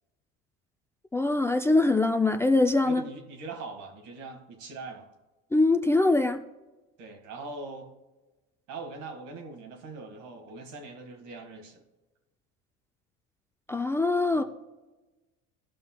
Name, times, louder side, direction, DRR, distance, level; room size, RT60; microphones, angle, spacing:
voice 1, 1.1-3.0 5.5-6.4 13.7-14.4, left 2 dB, 10° left, 8 dB, 0.3 m, -23 dB
voice 2, 2.8-5.1 7.0-7.9 8.7-11.8 14.3-14.4, right 3 dB, 75° right, 4 dB, 1.9 m, -41 dB
16.5 x 5.6 x 2.2 m, 1.1 s
supercardioid pair, 100°, 32 cm